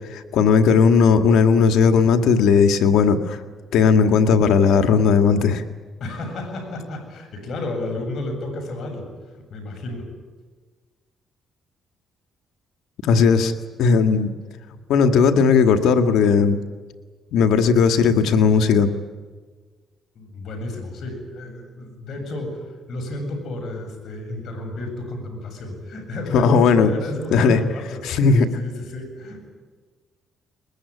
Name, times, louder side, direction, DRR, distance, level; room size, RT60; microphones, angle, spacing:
voice 1, 0.1-3.4 3.7-5.6 13.0-13.5 13.8-14.3 14.9-16.6 17.3-18.9 26.3-26.9 27.3-27.6 28.0-28.5, left 5 dB, 85° left, 8 dB, 1.9 m, -16 dB
voice 2, 6.0-9.1 9.3-10.1 20.1-29.4, left 2 dB, 65° left, 4 dB, 7.6 m, -32 dB
22.0 x 22.0 x 9.8 m, 1.4 s
cardioid pair, 90°, 0 cm